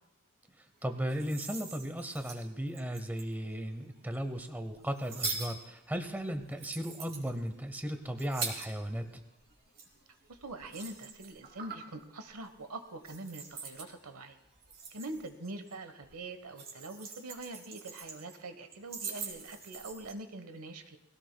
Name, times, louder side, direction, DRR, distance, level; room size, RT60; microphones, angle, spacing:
voice 1, 0.6-9.2, equal, 10° right, 7 dB, 0.7 m, -36 dB
sound 1, 0.9-3.5 4.1-9.1 9.4-12.0 12.3-12.6 13.0-13.9 14.5-15.7 16.0-18.4 18.7-20.1, right 4 dB, 45° right, 2.8 m, -43 dB
voice 2, 10.3-14.4 14.9-21.0, right 2 dB, 70° right, 9 dB, 1.1 m, -44 dB
21.5 x 16.5 x 2.2 m, 0.88 s
head